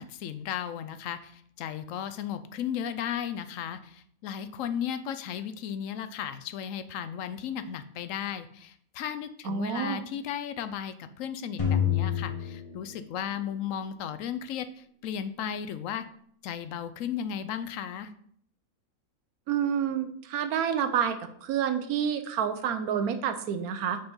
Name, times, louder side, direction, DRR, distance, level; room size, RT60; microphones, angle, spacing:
voice 1, 0.0-14.7 15.0-16.0 16.4-18.1, left 9 dB, 70° left, 11 dB, 0.9 m, -35 dB
voice 2, 9.4-10.0 19.5-21.2 21.4-24.0, right 8 dB, 80° right, 9 dB, 1.2 m, -28 dB
sound 1, 11.6-13.8, left 8 dB, 25° left, 1.2 m, -29 dB
5.3 x 4.4 x 5.5 m, 0.65 s
omnidirectional pair, 1.5 m